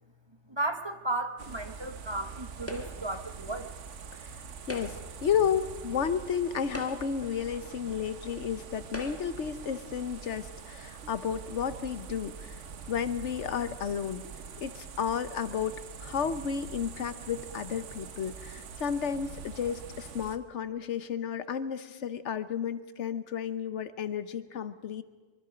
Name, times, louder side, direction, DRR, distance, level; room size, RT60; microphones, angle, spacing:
voice 1, 0.5-3.7, right 2 dB, 25° right, 7 dB, 0.9 m, -34 dB
sound 1, 1.4-20.4, right 6 dB, 80° right, 1.3 m, -44 dB
sound 2, 2.7-3.2 4.6-5.2 6.1-6.2 6.6-7.3 8.2-8.3 8.9-9.5, left 1 dB, 10° left, 1.5 m, -42 dB
voice 2, 5.2-12.6 12.9-14.2 14.6-25.0, left 7 dB, 75° left, 13 dB, 1.2 m, -32 dB
24.0 x 23.5 x 5.1 m, 1.3 s
omnidirectional pair, 1.2 m